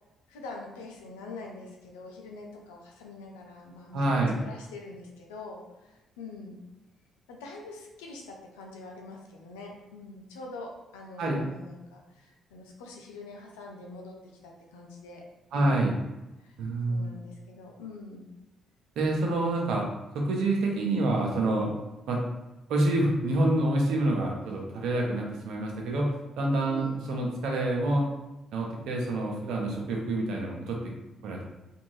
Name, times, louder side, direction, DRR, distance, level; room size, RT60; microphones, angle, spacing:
voice 1, 0.3-6.6 7.3-14.2 14.4-15.2 15.5-15.9 16.4-16.6 16.9-18.3 26.7-27.0, left 3 dB, 90° left, 1 dB, 0.5 m, -44 dB
voice 2, 3.9-4.4 11.2-11.4 15.5-15.9 16.6-17.2 19.0-19.9 20.1-21.7 22.1-22.2 22.7-26.1 26.4-28.1 28.5-30.8 31.2-31.4, right 2 dB, 75° right, -1 dB, 0.7 m, -27 dB
2.6 x 2.6 x 3.1 m, 1.0 s
hypercardioid pair, 50°, 0 cm